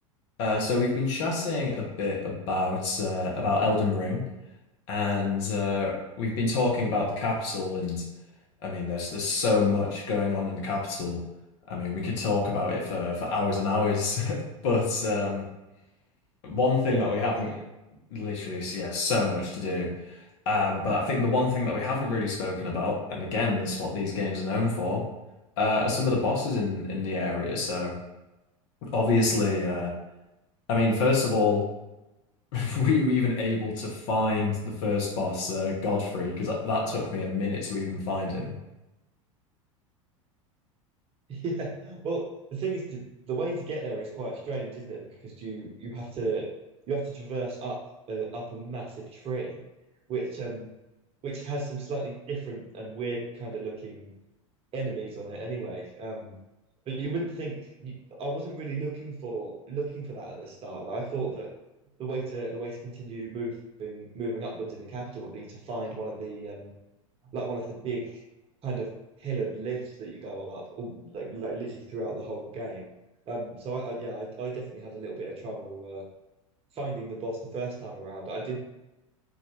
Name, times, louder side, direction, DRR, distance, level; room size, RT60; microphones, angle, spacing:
voice 1, 0.4-4.2 4.9-8.0 8.6-11.2 11.7-15.5 16.4-17.5 18.1-25.0 25.6-28.0 28.8-29.9 30.7-31.6 32.5-38.5, left 3 dB, 60° left, -2 dB, 0.9 m, -27 dB
voice 2, 16.9-17.5 41.3-42.3 42.5-46.4 46.9-47.8 48.1-49.6 50.1-50.7 51.2-54.1 54.7-56.4 56.9-61.5 62.0-66.7 67.3-68.2 68.6-68.9 69.2-72.9 73.3-76.0 76.7-78.6, right 3 dB, 35° right, -1 dB, 0.8 m, -34 dB
4.0 x 2.4 x 2.8 m, 0.98 s
hypercardioid pair, 85°, 17 cm